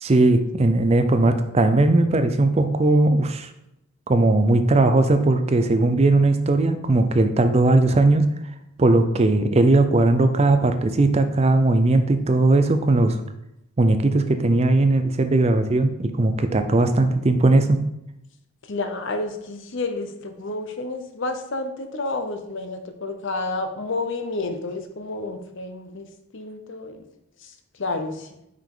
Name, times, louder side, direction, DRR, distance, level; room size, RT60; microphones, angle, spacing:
voice 1, 0.0-3.5 4.1-8.3 8.8-13.2 13.8-17.8, right 2 dB, 30° right, 8 dB, 0.4 m, -18 dB
voice 2, 18.7-26.1 26.3-27.0 27.4-27.5 27.8-28.3, left 2 dB, 55° left, 7 dB, 0.7 m, -30 dB
5.6 x 5.0 x 3.7 m, 0.83 s
head